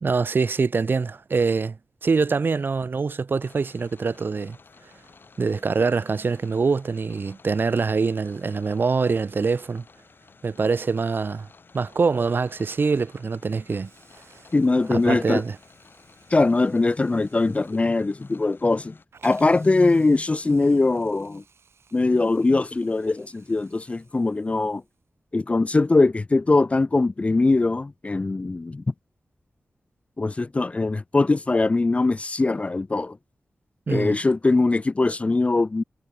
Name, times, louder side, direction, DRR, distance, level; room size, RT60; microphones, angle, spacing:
voice 1, 0.0-1.8 2.0-4.6 5.4-9.8 10.4-11.5 11.7-13.9 14.9-15.6 33.9-34.2, right 4 dB, 55° right, 0.9 m, -24 dB
sound 1, 3.4-19.1, left 4 dB, 55° left, 7.9 m, -53 dB
Hiss, 13.8-25.1, right 5 dB, 80° right, 6.2 m, -58 dB
voice 2, 14.5-15.4 16.3-19.0 19.2-21.4 21.9-24.8 25.3-28.8 30.2-33.2 33.9-35.8, left 3 dB, 30° left, 0.4 m, -21 dB
wide cardioid pair, 90°, 4 cm